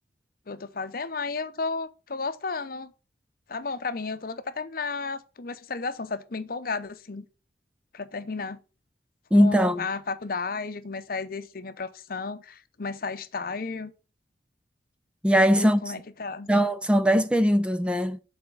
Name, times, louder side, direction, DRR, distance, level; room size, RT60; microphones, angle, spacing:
voice 1, 0.5-2.9 3.5-7.3 7.9-8.6 9.3-13.9 15.6-16.5, left 4 dB, 55° left, 0.7 m, -33 dB
voice 2, 9.3-9.9 15.2-15.8 16.5-18.2, equal, 5° right, 0.4 m, -20 dB
7.0 x 4.3 x 6.8 m
head